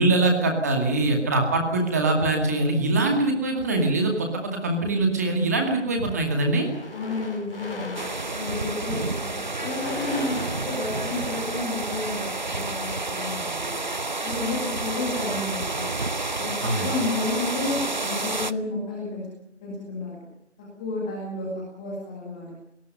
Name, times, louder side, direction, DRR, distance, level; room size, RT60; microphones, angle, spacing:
voice 1, 0.0-6.7 16.6-16.9, right 2 dB, 15° right, 3 dB, 2.3 m, -23 dB
sound 1, 3.7-4.7 5.4-5.7 5.9-12.4, left 2 dB, 55° left, 5.1 m, -40 dB
voice 2, 6.9-8.0 8.3-13.9 14.2-15.9 16.4-19.2 19.6-20.2 20.8-22.5, left 2 dB, 5° left, -4 dB, 1.9 m, -31 dB
sound 2, 7.9-18.5, right 3 dB, 40° right, 0.8 m, -30 dB
26.0 x 19.0 x 6.8 m, 0.74 s
figure-of-eight pair, 165°, 35 cm